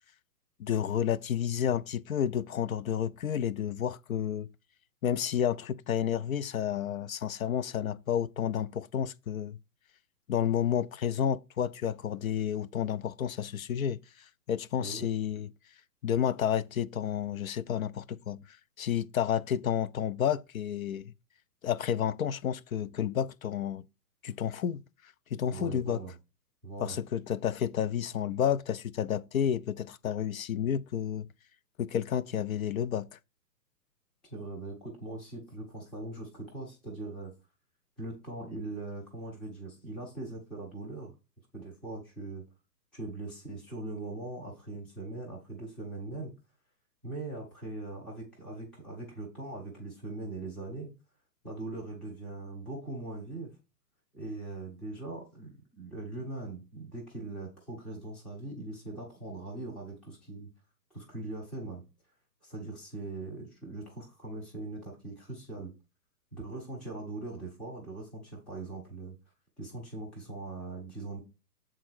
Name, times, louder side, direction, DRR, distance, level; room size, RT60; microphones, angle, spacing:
voice 1, 0.6-4.5 5.0-9.6 10.3-15.5 16.0-21.1 21.6-23.8 24.2-24.8 25.3-26.0 26.8-31.3 31.8-33.2, left 9 dB, 55° left, 0.5 m, -31 dB
voice 2, 14.8-15.1 25.5-26.1 26.6-27.0 34.3-37.3 38.0-41.1 41.5-42.4 42.9-46.3 47.0-50.9 51.4-53.5 54.1-60.5 60.9-61.8 62.4-65.7 66.3-69.1 69.6-71.2, right 2 dB, ahead, 0.5 m, -41 dB
7.5 x 3.8 x 4.5 m
hypercardioid pair, 130°, 49 cm